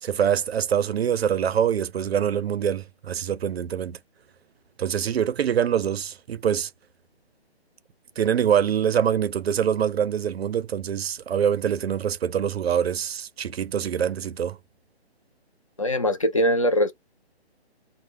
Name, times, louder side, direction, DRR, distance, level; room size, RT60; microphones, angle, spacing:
voice 1, 0.0-4.0 4.8-6.7 8.2-14.6, right 8 dB, 70° right, 0.4 m, -24 dB
voice 2, 15.8-16.9, equal, 30° left, 0.4 m, -21 dB
2.1 x 2.0 x 3.1 m
hypercardioid pair, 155°, 32 cm